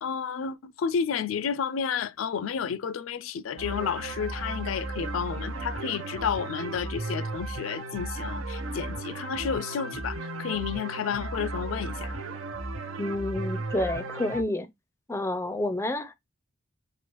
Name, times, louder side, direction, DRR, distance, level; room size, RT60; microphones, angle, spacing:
voice 1, 0.0-12.2, left 7 dB, 75° left, 0.4 m, -31 dB
sound 1, 3.6-14.4, right 2 dB, 90° right, 0.6 m, -35 dB
voice 2, 13.0-14.7 15.1-16.1, left 1 dB, 15° left, 0.4 m, -29 dB
6.0 x 2.4 x 2.9 m
head